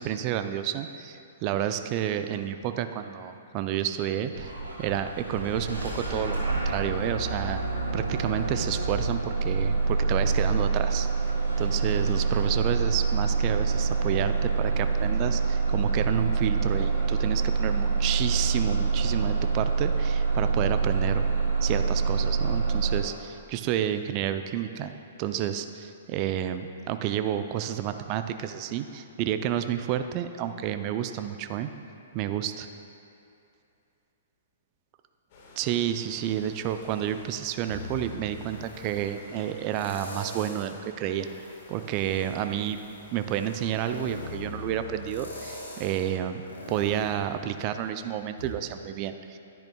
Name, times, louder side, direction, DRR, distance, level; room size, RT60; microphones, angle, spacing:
voice 1, 0.0-4.5 4.8-7.6 7.9-11.1 11.6-21.3 21.6-24.9 25.2-31.7 32.1-32.7 35.6-41.3 41.7-42.8 43.1-46.4 46.7-49.4, right 10 dB, 35° right, 9 dB, 0.4 m, -30 dB
Bus / Engine starting, 4.3-23.0, right 4 dB, 90° right, 1.8 m, -26 dB
sound 1, 35.3-47.9, left 2 dB, 45° left, 1.6 m, -51 dB
sound 2, 37.7-39.1 39.7-40.8 41.2-47.9 48.4-48.5, left 2 dB, 80° left, 1.9 m, -42 dB
11.0 x 10.5 x 2.3 m, 2.7 s
figure-of-eight pair, 115°, 0 cm